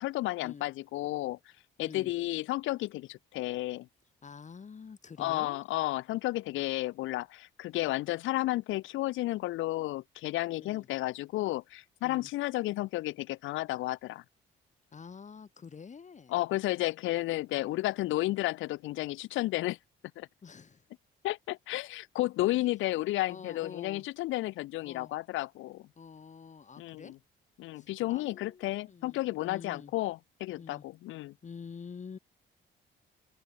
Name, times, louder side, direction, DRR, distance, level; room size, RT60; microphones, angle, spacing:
voice 1, 0.0-1.4 1.8-3.9 5.2-14.2 16.3-19.8 20.2-20.3 21.2-25.9 26.8-27.2 27.6-31.3, left 17 dB, 80° left, 0.5 m, -32 dB
voice 2, 1.8-2.1 4.2-5.6 10.6-10.9 12.0-12.3 14.9-16.4 17.5-17.8 20.4-20.9 23.3-24.1 24.8-25.1 26.0-27.2 27.7-29.9 30.6-30.8 31.4-32.2, left 6 dB, 35° left, 2.0 m, -47 dB
open air
cardioid pair, 90°, 20 cm